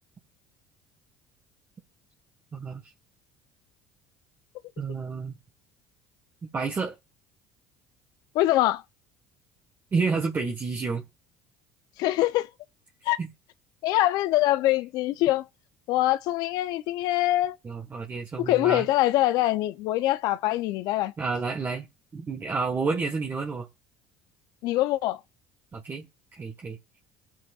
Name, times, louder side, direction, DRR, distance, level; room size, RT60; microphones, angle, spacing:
voice 1, 2.5-2.8 4.8-5.4 6.5-6.9 9.9-11.0 13.2-13.3 17.6-18.9 21.2-21.9 22.1-23.7 25.7-26.0 26.3-26.8, right 4 dB, 30° right, 1.5 m, -29 dB
voice 2, 8.3-8.8 12.0-12.5 13.1-13.2 13.8-15.4 15.9-17.6 18.5-21.1 24.6-25.2, left 15 dB, 70° left, 0.7 m, -24 dB
20.0 x 7.6 x 2.4 m
supercardioid pair, 80°, 7 cm